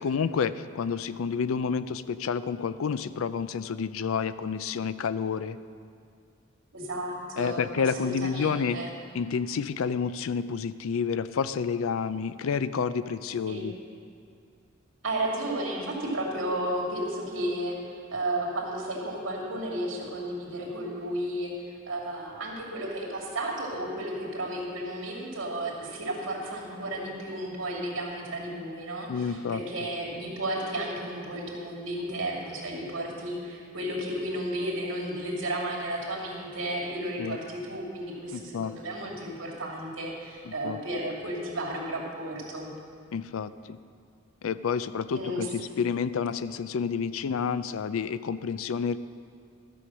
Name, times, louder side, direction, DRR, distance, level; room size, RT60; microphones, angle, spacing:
voice 1, 0.0-5.6 7.4-8.8 9.1-13.7 29.1-29.6 37.2-37.4 38.3-38.7 40.5-40.8 43.1-43.8 44.4-49.0, left 6 dB, 90° left, 14 dB, 0.4 m, -29 dB
voice 2, 6.7-8.9 13.5-13.6 15.0-42.7 45.1-45.5, right 1 dB, 70° right, -2 dB, 2.5 m, -33 dB
13.0 x 6.9 x 6.2 m, 2.3 s
head